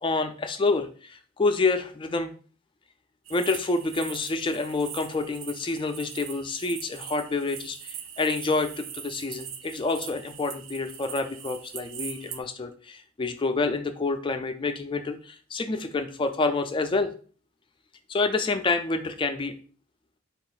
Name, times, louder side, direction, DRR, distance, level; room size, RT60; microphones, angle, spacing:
voice 1, 0.0-2.3 3.3-17.1 18.1-19.5, left 3 dB, 25° left, 7 dB, 0.4 m, -28 dB
sound 1, 3.3-12.4, right 8 dB, 65° right, 0.4 m, -41 dB
4.4 x 2.4 x 3.8 m, 0.41 s
head